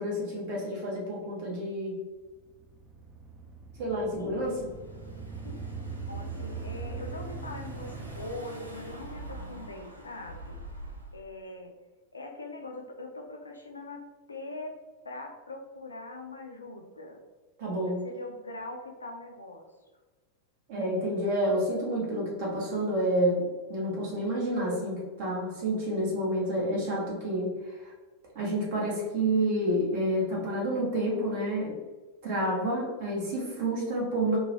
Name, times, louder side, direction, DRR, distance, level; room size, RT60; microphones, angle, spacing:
voice 1, 0.0-2.0 3.8-4.7 17.6-18.1 20.7-27.9 28.3-31.7 32.2-34.4, right 1 dB, 50° right, -3 dB, 1.0 m, -29 dB
sound 1, 2.3-9.2, right 4 dB, 20° right, 0.4 m, -41 dB
Car / Engine, 4.5-11.2, right 1 dB, 85° right, 0.5 m, -46 dB
voice 2, 6.1-10.6 11.1-11.8 12.1-14.8 15.0-17.2 18.0-19.7, left 2 dB, 80° left, 3 dB, 0.4 m, -42 dB
2.9 x 2.1 x 2.8 m, 1.3 s
figure-of-eight pair, 90°, 0 cm